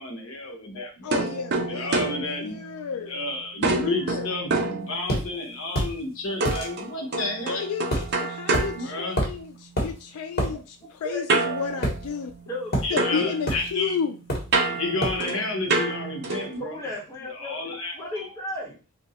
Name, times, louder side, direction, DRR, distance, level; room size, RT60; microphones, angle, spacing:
voice 1, 0.0-1.2 1.7-2.7 3.0-7.7 8.7-9.4 10.5-10.6 12.8-14.0 14.6-16.8 17.3-18.3, left 2 dB, 70° left, 2 dB, 0.8 m, -31 dB
voice 2, 1.0-1.9 2.4-3.2 3.8-3.9 7.5-7.8 8.2-9.5 9.8-12.3 12.9-14.1, left 6 dB, 90° left, 6 dB, 0.3 m, -31 dB
sound 1, 1.1-3.2 3.6-5.5 6.4-9.6 11.3-12.7 13.0-16.6, right 3 dB, 50° right, 0.5 m, -29 dB
sound 2, 5.1-5.3 5.7-5.9 6.4-6.7 7.9-8.1 8.5-8.7 9.2-9.4 9.8-9.9 10.4-10.5 11.8-12.4 12.7-12.9 13.5-13.7 14.3-14.6 15.0-15.2, equal, 45° left, 1.1 m, -26 dB
voice 3, 11.0-11.9 12.5-13.2 16.0-16.2 16.6-18.8, left 1 dB, 15° left, -4 dB, 1.1 m, -36 dB
2.7 x 2.2 x 4.0 m, 0.34 s
head